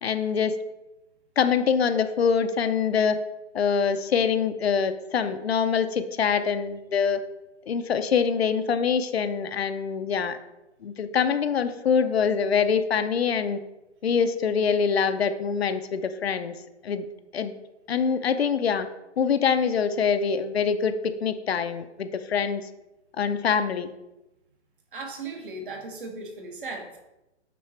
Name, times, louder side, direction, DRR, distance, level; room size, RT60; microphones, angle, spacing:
voice 1, 0.0-0.5 1.4-3.2 3.5-7.2 7.7-10.4 10.8-13.6 14.0-16.5 16.8-17.1 17.3-17.5 17.9-18.9 19.2-22.7 23.2-23.9, left 6 dB, 60° left, 10 dB, 0.7 m, -24 dB
voice 2, 24.9-27.0, right 3 dB, 45° right, 3 dB, 1.5 m, -37 dB
9.3 x 3.9 x 4.3 m, 0.95 s
hypercardioid pair, 170°, 35 cm